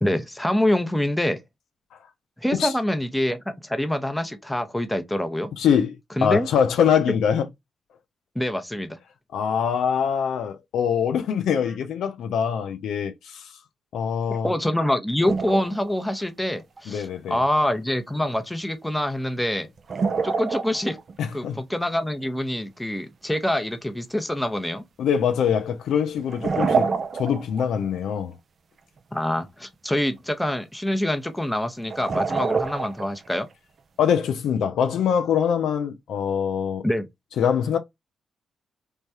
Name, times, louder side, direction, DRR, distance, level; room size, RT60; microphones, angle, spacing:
voice 1, 0.0-1.4 2.4-5.5 6.2-6.5 8.3-9.0 14.3-19.7 20.2-21.0 21.3-24.8 29.1-33.5 36.8-37.1, left 1 dB, 10° left, 0.8 m, -25 dB
voice 2, 5.6-6.0 6.2-7.5 9.3-13.4 13.9-14.5 16.9-17.4 21.2-21.6 25.0-26.9 27.1-28.3 34.0-36.8 37.4-37.8, left 8 dB, 70° left, 0.4 m, -23 dB
sound 1, 15.2-15.9 16.2-16.3 16.8-16.9 19.8-21.1 24.6-24.7 26.2-27.6 27.9-28.0 31.9-33.3, right 5 dB, 55° right, 0.4 m, -26 dB
3.2 x 2.2 x 2.6 m
hypercardioid pair, 40°, 0 cm